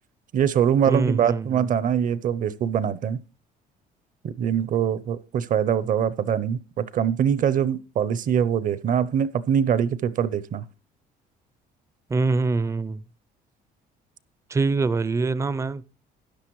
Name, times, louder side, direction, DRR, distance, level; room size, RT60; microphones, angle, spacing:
voice 1, 0.3-3.2 4.2-10.6, right 8 dB, 50° right, 0.7 m, -23 dB
voice 2, 0.9-1.7 12.1-13.0 14.5-15.8, right 3 dB, 15° right, 0.4 m, -24 dB
13.0 x 9.7 x 3.1 m
cardioid pair, 110°, 17 cm